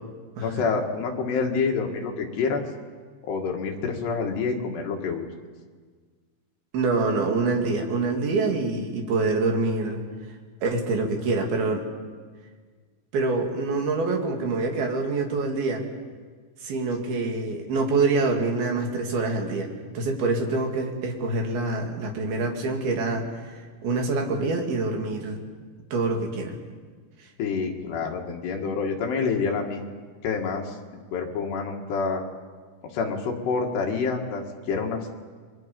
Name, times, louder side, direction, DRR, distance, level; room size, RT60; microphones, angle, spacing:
voice 1, 0.4-2.6 3.2-5.3 27.4-29.9 30.2-30.8 31.1-32.2 32.8-35.1, left 5 dB, 60° left, 1 dB, 3.7 m, -27 dB
voice 2, 6.7-10.0 10.6-11.9 13.1-15.8 16.6-25.4 25.9-26.6, right 3 dB, 55° right, 2 dB, 3.8 m, -26 dB
30.0 x 23.5 x 5.4 m, 1.5 s
omnidirectional pair, 5.8 m